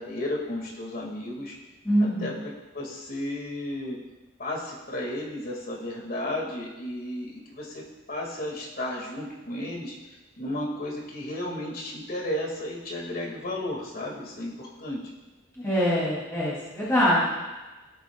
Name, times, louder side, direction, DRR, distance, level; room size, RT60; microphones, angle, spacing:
voice 1, 0.0-1.6 2.0-4.0 4.4-9.9 10.4-15.0, left 1 dB, 50° left, -1 dB, 2.1 m, -33 dB
voice 2, 1.8-2.3 15.6-17.3, equal, 15° left, -10 dB, 2.8 m, -24 dB
17.0 x 8.4 x 2.4 m, 1.1 s
head